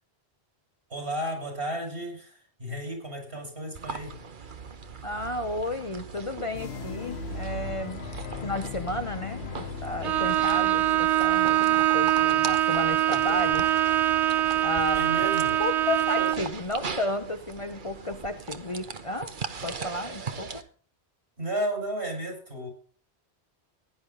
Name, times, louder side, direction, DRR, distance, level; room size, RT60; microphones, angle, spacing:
voice 1, 0.9-4.2 14.9-15.6 16.2-16.3 20.5-20.6 21.4-22.7, right 1 dB, 70° right, 2 dB, 6.0 m, -33 dB
sound 1, 3.7-20.6, right 4 dB, 50° right, 1.2 m, -39 dB
voice 2, 5.0-8.1 8.4-13.7 14.6-15.2 15.6-19.3 19.6-20.6, left 2 dB, 30° left, 8 dB, 0.9 m, -33 dB
sound 2, 6.5-18.3, left 10 dB, 70° left, 1.1 m, -42 dB
Bowed string instrument, 10.0-16.5, right 14 dB, 85° right, 1.1 m, -23 dB
16.0 x 10.5 x 3.9 m, 0.43 s
omnidirectional pair, 1.1 m